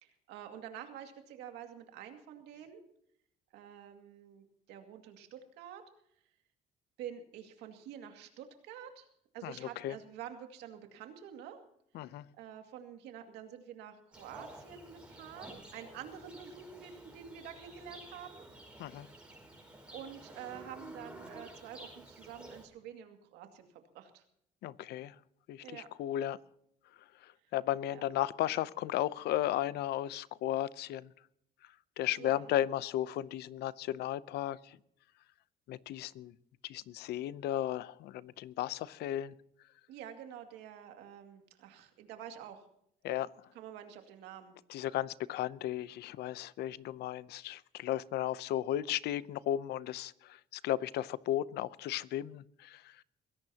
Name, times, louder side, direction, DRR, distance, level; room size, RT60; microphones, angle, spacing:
voice 1, 0.0-2.8 3.5-5.8 7.0-9.1 9.3-11.6 12.4-18.5 19.9-24.2 25.6-25.9 27.8-28.0 32.2-32.5 39.9-42.7 43.5-44.6, right 9 dB, 90° right, 2.3 m, -48 dB
voice 2, 9.4-10.0 11.9-12.2 18.8-19.1 24.6-25.2 25.5-26.4 27.2-31.1 32.0-34.8 35.7-36.3 36.6-39.3 43.0-43.3 44.7-53.0, left 12 dB, 75° left, 0.7 m, -35 dB
Livestock farm animals working animals, 14.1-22.6, right 1 dB, 5° right, 5.1 m, -51 dB
22.5 x 17.0 x 2.9 m
cardioid pair, 110°, 17 cm